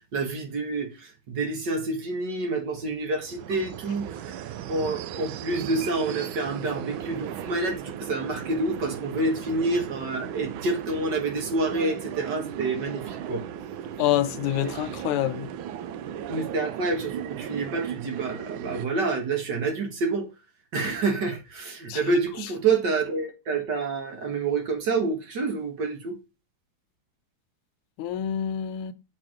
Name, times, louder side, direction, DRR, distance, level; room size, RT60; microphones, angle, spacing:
voice 1, 0.1-4.4 4.7-13.4 14.6-14.7 16.3-20.3 20.7-26.2, right 3 dB, 55° right, 2.0 m, -28 dB
sound 1, 3.2-18.9, right 10 dB, 75° right, 1.3 m, -37 dB
voice 2, 14.0-15.5 21.9-22.0 28.0-28.9, left 12 dB, 90° left, 1.6 m, -26 dB
7.1 x 4.5 x 3.7 m
omnidirectional pair, 2.4 m